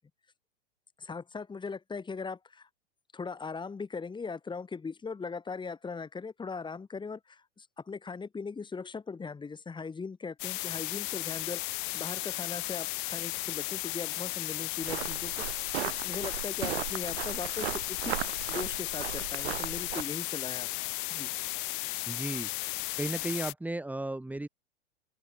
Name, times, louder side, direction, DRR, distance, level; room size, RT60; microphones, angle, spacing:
voice 1, 1.0-2.7 3.1-18.2 18.5-20.7 21.1-21.3, left 5 dB, 15° left, 5.3 m, -39 dB
sound 1, 10.4-23.5, left 23 dB, 45° left, 0.9 m, -35 dB
sound 2, 14.8-20.0, right 14 dB, 60° right, 2.4 m, -37 dB
voice 2, 22.1-22.7 23.0-24.5, right 2 dB, 5° right, 4.3 m, -35 dB
open air
hypercardioid pair, 105°, 35 cm